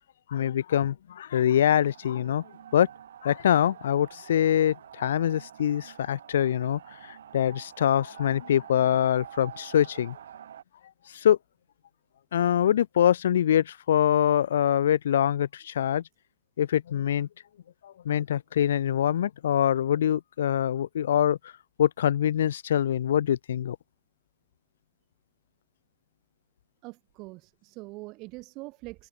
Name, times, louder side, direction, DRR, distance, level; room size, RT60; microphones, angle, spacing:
voice 1, 0.3-2.4 2.7-2.9 3.2-10.2 11.1-11.4 12.3-16.0 16.6-17.3 17.8-21.4 21.8-23.8, left 10 dB, 75° left, 0.5 m, -24 dB
sound 1, 1.5-10.6, right 9 dB, 90° right, 3.6 m, -48 dB
voice 2, 26.8-29.1, right 23 dB, 25° right, 1.7 m, -43 dB
open air
supercardioid pair, 175°, 0 cm